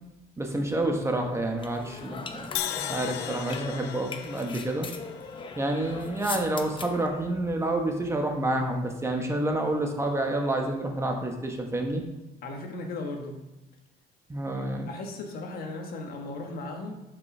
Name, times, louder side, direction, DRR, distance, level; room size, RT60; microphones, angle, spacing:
voice 1, 0.4-2.5 2.8-4.9 5.6-12.0 14.3-14.9, right 1 dB, 15° right, 2 dB, 1.1 m, -28 dB
sound 1, 1.6-7.1, left 5 dB, 30° left, 0.7 m, -39 dB
Crash cymbal, 2.5-6.6, left 12 dB, 80° left, 0.5 m, -37 dB
voice 2, 12.4-13.4 14.8-16.9, left 2 dB, 65° left, 3 dB, 1.4 m, -36 dB
5.4 x 5.3 x 6.0 m, 0.94 s
cardioid pair, 110°, 17 cm